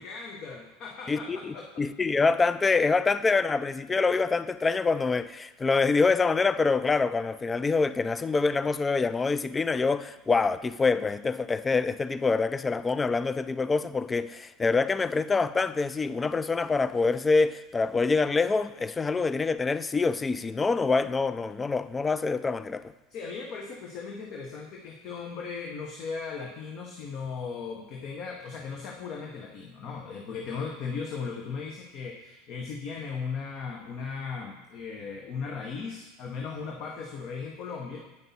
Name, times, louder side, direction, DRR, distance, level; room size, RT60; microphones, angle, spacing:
voice 1, 0.0-1.8 23.1-38.0, left 5 dB, 50° left, 0.9 m, -37 dB
voice 2, 1.1-22.9, left 4 dB, 20° left, 0.3 m, -26 dB
8.4 x 5.3 x 4.2 m
hypercardioid pair, 80°, 0 cm